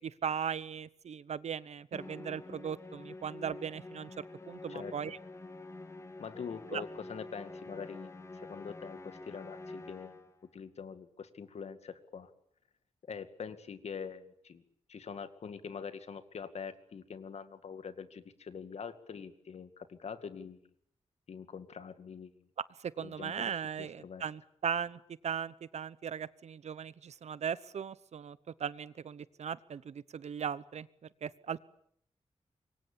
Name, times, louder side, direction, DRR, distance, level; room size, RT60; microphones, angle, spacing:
voice 1, 0.0-4.1 4.5-5.2 6.7-6.8 22.8-30.9 31.2-31.6, right 7 dB, 75° right, 18 dB, 1.0 m, -38 dB
Musical instrument, 1.9-10.4, left 2 dB, 25° left, 2.3 m, -47 dB
voice 2, 4.7-5.2 6.2-10.2 10.5-12.3 13.1-14.6 14.9-20.6 21.3-22.4 23.0-24.3, left 6 dB, 70° left, 11 dB, 2.3 m, -44 dB
26.5 x 23.5 x 8.8 m, 0.68 s
wide cardioid pair, 165°, 12 cm